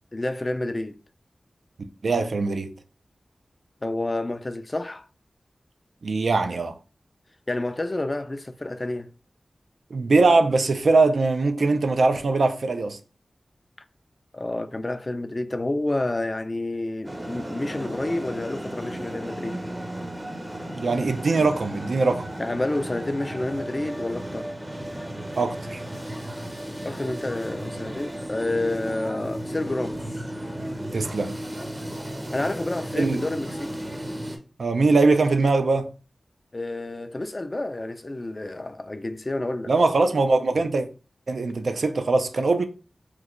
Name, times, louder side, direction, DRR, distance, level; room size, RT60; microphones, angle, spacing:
voice 1, 0.1-0.9 3.8-5.0 7.5-9.1 14.3-19.6 22.4-24.5 26.8-30.0 32.3-33.8 36.5-39.7, left 2 dB, 35° left, 0.3 m, -29 dB
voice 2, 2.0-2.7 6.0-6.7 9.9-13.0 20.7-22.3 25.4-25.8 30.9-31.4 32.9-33.3 34.6-35.9 39.7-40.9 41.3-42.6, right 3 dB, 75° right, 0.4 m, -21 dB
sound 1, 17.0-34.4, right 1 dB, 25° right, 0.6 m, -34 dB
3.1 x 2.2 x 3.6 m
wide cardioid pair, 65°, 0 cm